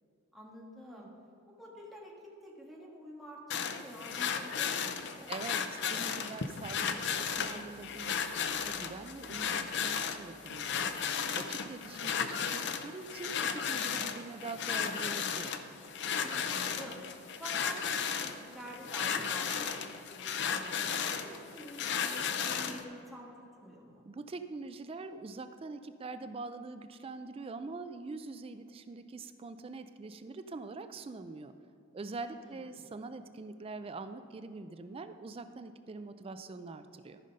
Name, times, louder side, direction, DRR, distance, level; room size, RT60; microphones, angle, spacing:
voice 1, 0.3-1.1 1.5-5.3 11.8-12.2 16.2-17.0 17.3-23.3 23.6-24.0 32.4-32.9, equal, ahead, -4 dB, 1.5 m, -48 dB
sound 1, 3.5-22.8, left 7 dB, 55° left, 0.6 m, -34 dB
voice 2, 5.3-10.9 11.3-15.5 24.1-31.5 31.9-37.2, right 3 dB, 25° right, 10 dB, 0.3 m, -44 dB
14.0 x 5.5 x 5.2 m, 2.7 s
head